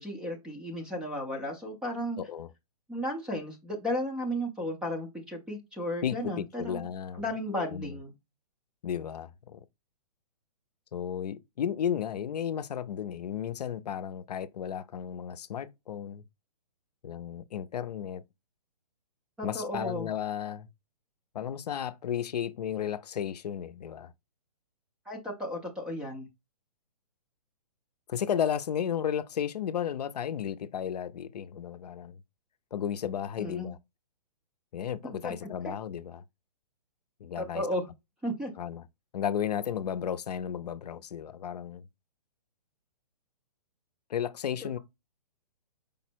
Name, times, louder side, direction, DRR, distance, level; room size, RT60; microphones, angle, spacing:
voice 1, 0.0-2.2 2.9-6.9 7.1-8.1 19.4-20.1 25.1-26.3 33.4-33.7 35.2-35.3 35.6-35.8 37.4-37.9 38.2-38.5, equal, 5° right, 0.4 m, -34 dB
voice 2, 2.2-2.5 6.0-7.2 7.5-8.0 8.8-9.6 10.9-16.2 17.0-18.2 19.4-20.7 21.3-24.1 28.1-32.2 32.7-33.8 34.7-36.2 37.2-37.7 38.6-38.8 39.1-41.9 44.1-44.8, left 9 dB, 70° left, 0.5 m, -33 dB
5.1 x 2.0 x 4.4 m
hypercardioid pair, 160°, 21 cm